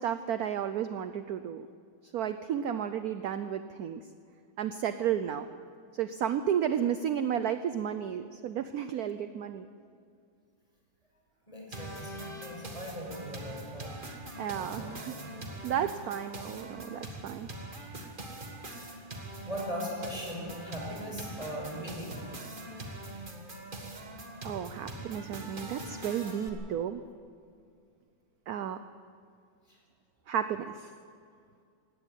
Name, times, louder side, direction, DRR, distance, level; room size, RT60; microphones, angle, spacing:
voice 1, 0.0-1.7 2.1-4.0 4.6-5.5 5.9-9.7 14.4-15.1 15.6-17.5 24.4-27.0 28.5-28.8 30.3-30.9, right 9 dB, 65° right, 11 dB, 1.0 m, -32 dB
voice 2, 11.5-13.9 14.5-15.3 18.8-19.2 19.4-22.4 29.7-29.8, equal, 15° left, -2 dB, 6.0 m, -40 dB
sound 1, 11.7-26.5, right 1 dB, 25° right, 1.8 m, -43 dB
17.5 x 17.0 x 9.2 m, 2.3 s
omnidirectional pair, 2.1 m